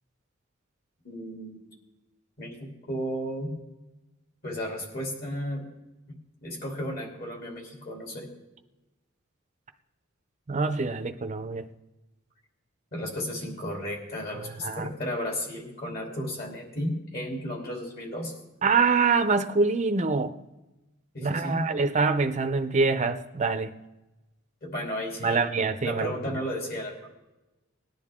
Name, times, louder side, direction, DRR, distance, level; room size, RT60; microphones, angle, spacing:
voice 1, 1.0-1.6 2.4-3.6 4.4-5.6 6.4-8.3 12.9-18.3 21.1-21.7 24.6-25.5 25.8-27.1, equal, 50° left, 0 dB, 3.2 m, -34 dB
voice 2, 10.5-11.7 14.6-14.9 18.6-20.3 21.2-23.7 25.2-26.4, right 4 dB, 35° right, 7 dB, 0.6 m, -25 dB
19.5 x 10.5 x 3.7 m, 1.0 s
head